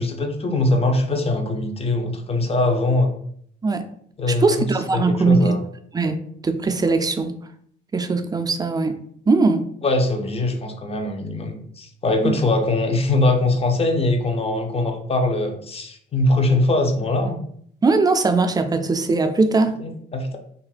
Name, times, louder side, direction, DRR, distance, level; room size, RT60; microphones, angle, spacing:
voice 1, 0.0-3.1 4.2-4.7 4.9-5.6 9.8-17.4 19.8-20.4, left 2 dB, 30° left, 5 dB, 0.6 m, -22 dB
voice 2, 4.4-5.6 5.9-7.3 7.9-9.0 9.3-9.6 12.2-12.3 17.8-19.8, right 3 dB, 20° right, 8 dB, 0.4 m, -20 dB
2.5 x 2.2 x 4.0 m, 0.64 s
cardioid pair, 90°, 20 cm